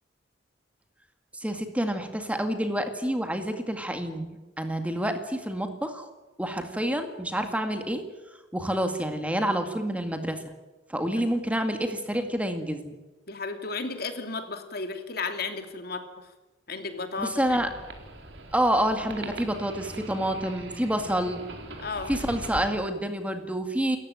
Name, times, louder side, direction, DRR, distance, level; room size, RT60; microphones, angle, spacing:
voice 1, 1.3-6.1 6.4-8.0 8.5-10.4 10.9-12.9 17.2-17.7 18.5-21.4 22.1-24.0, right 1 dB, 5° right, 6 dB, 2.1 m, -28 dB
voice 2, 10.9-11.2 13.3-16.3 16.7-17.7 18.8-18.9 21.8-22.1, left 4 dB, 55° left, 6 dB, 2.9 m, -34 dB
sound 1, 17.5-22.8, right 2 dB, 70° right, 4.0 m, -41 dB
29.0 x 15.0 x 9.0 m, 1.1 s
head